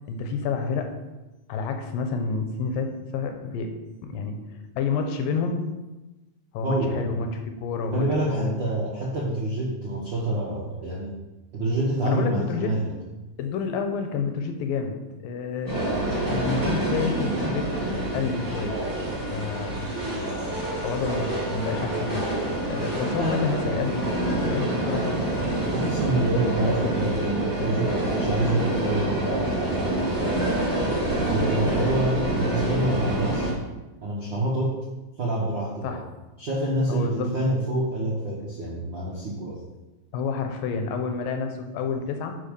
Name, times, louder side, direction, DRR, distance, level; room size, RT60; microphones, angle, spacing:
voice 1, 0.1-1.0 1.5-5.7 6.5-8.5 12.0-12.8 13.4-18.8 19.2-19.9 20.7-22.3 22.7-24.1 24.4-25.3 35.8-36.0 36.9-37.3 40.1-42.4, left 5 dB, 85° left, 6 dB, 2.6 m, -29 dB
voice 2, 6.6-7.1 7.9-11.1 11.5-12.9 22.9-23.5 25.7-30.3 30.9-33.5 34.0-34.8 35.2-36.0 36.4-39.6, right 1 dB, 65° right, -5 dB, 1.1 m, -27 dB
sound 1, 15.7-33.5, right 1 dB, 15° right, 0.8 m, -27 dB
9.6 x 4.6 x 5.2 m, 1.1 s
omnidirectional pair, 3.9 m